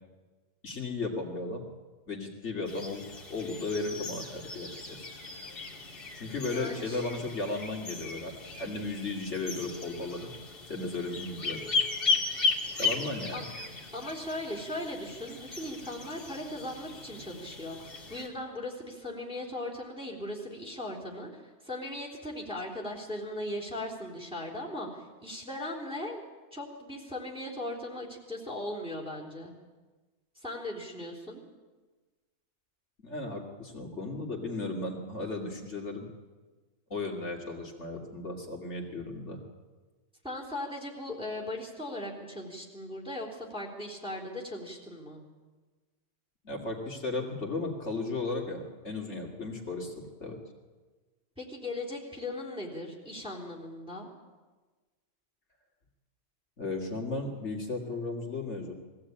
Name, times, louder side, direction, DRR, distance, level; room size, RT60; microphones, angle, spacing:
voice 1, 0.6-1.6 2.1-3.0 3.3-5.1 6.1-10.3 10.7-11.6 12.8-13.5 33.0-36.1 36.9-39.4 46.4-50.4 56.6-58.7, left 3 dB, 65° left, -1 dB, 2.7 m, -35 dB
sound 1, 2.7-18.3, left 4 dB, 50° left, 2.5 m, -36 dB
voice 2, 6.4-7.1 13.3-13.4 13.9-26.2 26.5-29.5 30.4-31.4 40.2-45.2 51.4-54.1, left 1 dB, 5° right, -1 dB, 3.6 m, -38 dB
21.0 x 15.5 x 8.7 m, 1.3 s
omnidirectional pair, 1.3 m